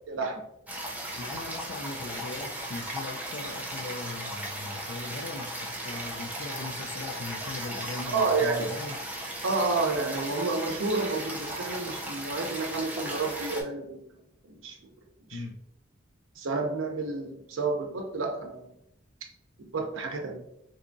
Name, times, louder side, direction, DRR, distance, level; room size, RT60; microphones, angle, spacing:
voice 1, 0.1-0.4 8.1-8.7 9.4-14.0 14.4-14.8 15.3-15.4 16.4-18.7 19.6-20.5, right 3 dB, 80° right, 0.6 m, -30 dB
sound 1, 0.7-13.6, right 1 dB, 10° right, 0.5 m, -36 dB
voice 2, 1.2-9.0 15.3-15.7, left 3 dB, 55° left, 0.3 m, -39 dB
3.4 x 2.7 x 2.6 m
head